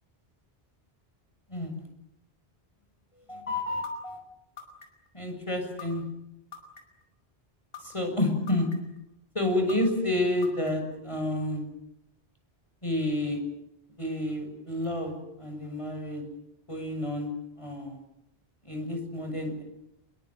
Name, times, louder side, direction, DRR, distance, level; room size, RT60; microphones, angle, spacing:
voice 1, 1.5-1.9 3.3-4.2 5.1-6.0 7.8-8.7 9.3-11.6 12.8-13.4 14.0-16.2 16.7-18.0 18.6-19.6, left 1 dB, 30° left, 4 dB, 6.9 m, -30 dB
sound 1, 3.8-3.9 4.6-5.1 5.8-5.9 6.5-7.0 7.7-7.8 8.5-9.0 9.7-9.8 10.4-10.9, left 7 dB, 70° left, 5.5 m, -43 dB
27.5 x 22.5 x 7.9 m, 0.84 s
omnidirectional pair, 1.0 m